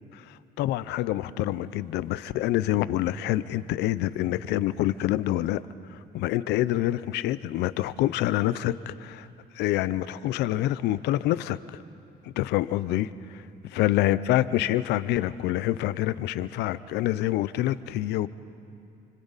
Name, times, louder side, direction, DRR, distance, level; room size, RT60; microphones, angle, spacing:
voice 1, 0.6-5.6 5.9-9.3 9.5-11.8 12.2-13.4 13.7-18.3, left 14 dB, 85° left, 16 dB, 0.7 m, -26 dB
30.0 x 25.5 x 4.1 m, 2.7 s
cardioid pair, 110°, 17 cm